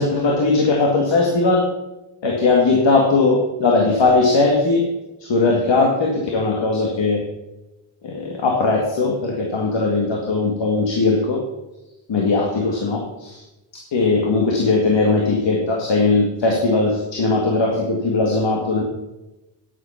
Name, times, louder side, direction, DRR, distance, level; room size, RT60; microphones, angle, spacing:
voice 1, 0.0-1.7 2.2-4.9 5.2-7.2 8.0-11.4 12.1-13.4 13.9-18.8, left 3 dB, 70° left, 0 dB, 2.2 m, -19 dB
10.0 x 8.7 x 5.8 m, 1.0 s
cardioid pair, 85°, 46 cm